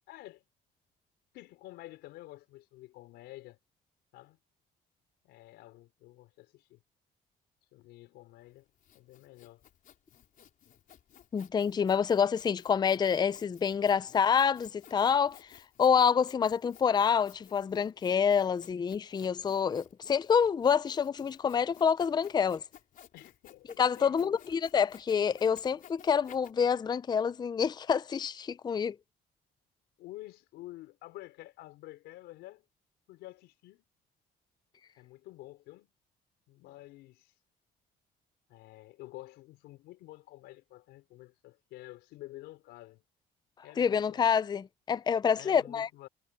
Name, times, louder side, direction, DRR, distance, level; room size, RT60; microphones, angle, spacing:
voice 1, 0.1-0.4 1.3-3.6 4.1-4.4 5.2-6.8 7.7-8.6 8.9-9.6 23.1-24.4 25.7-25.8 30.0-32.6 33.1-33.8 35.0-35.9 36.5-37.3 38.5-43.0 43.6-44.4 45.4-46.1, left 17 dB, 90° left, 5.1 m, -49 dB
Sawing, 8.5-26.5, left 9 dB, 55° left, 4.2 m, -57 dB
voice 2, 11.3-22.6 23.8-29.0 43.8-45.9, left 7 dB, 25° left, 0.5 m, -27 dB
cardioid pair, 110°, 17 cm